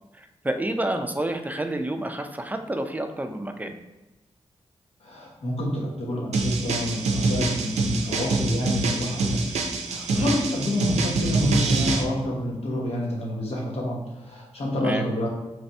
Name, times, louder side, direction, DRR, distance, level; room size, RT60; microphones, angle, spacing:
voice 1, 0.1-3.8 10.1-10.4 14.7-15.1, right 1 dB, 15° right, 6 dB, 0.4 m, -29 dB
voice 2, 5.0-9.4 9.9-15.3, left 1 dB, 65° left, -3 dB, 1.1 m, -28 dB
sound 1, 6.3-12.0, right 3 dB, 85° right, 0.5 m, -25 dB
3.3 x 2.6 x 4.3 m, 1.1 s
cardioid pair, 65°, 11 cm